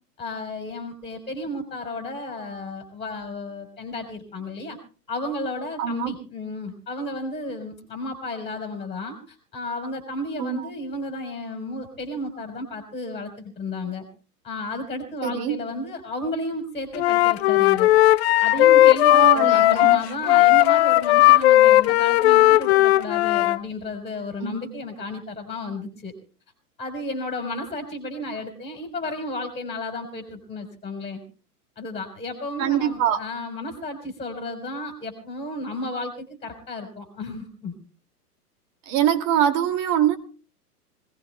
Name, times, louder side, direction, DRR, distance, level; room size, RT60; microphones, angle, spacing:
voice 1, 0.2-4.8 5.1-14.1 14.4-17.9 18.4-26.1 26.8-31.2 31.8-37.7, left 2 dB, 15° left, 3 dB, 3.9 m, -33 dB
voice 2, 5.8-6.2 10.4-10.6 15.2-15.6 19.1-20.0 24.4-24.7 32.6-33.2 38.9-40.2, right 9 dB, 40° right, 7 dB, 2.4 m, -23 dB
Wind instrument woodwind instrument, 16.9-23.6, left 15 dB, 45° left, 0.6 m, -16 dB
26.0 x 18.0 x 2.3 m, 0.37 s
hypercardioid pair, 115°, 46 cm